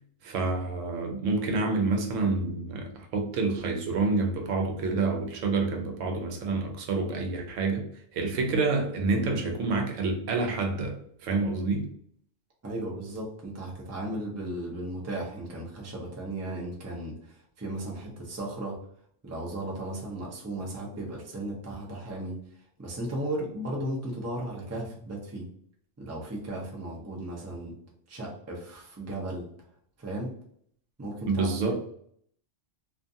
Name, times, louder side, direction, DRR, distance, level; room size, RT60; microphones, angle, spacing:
voice 1, 0.2-7.9 8.1-11.9 31.3-31.8, right 3 dB, 85° right, 1.0 m, -28 dB
voice 2, 12.6-18.8 19.2-22.4 22.8-25.5 26.0-27.8 28.1-29.5 30.0-30.4 31.0-31.5, right 1 dB, 20° right, 0.4 m, -35 dB
2.5 x 2.4 x 2.6 m
omnidirectional pair, 1.3 m